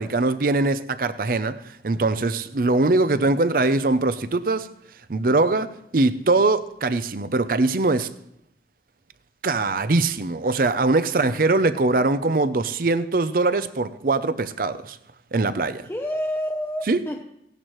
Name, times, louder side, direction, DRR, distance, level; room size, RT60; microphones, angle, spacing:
voice 1, 0.0-1.6 1.8-4.7 5.1-8.1 9.4-15.0 15.3-15.9 16.9-17.0, right 3 dB, 50° right, 0.5 m, -22 dB
voice 2, 11.1-11.4 15.8-17.2, equal, 15° left, 0.6 m, -29 dB
17.0 x 10.5 x 3.1 m
head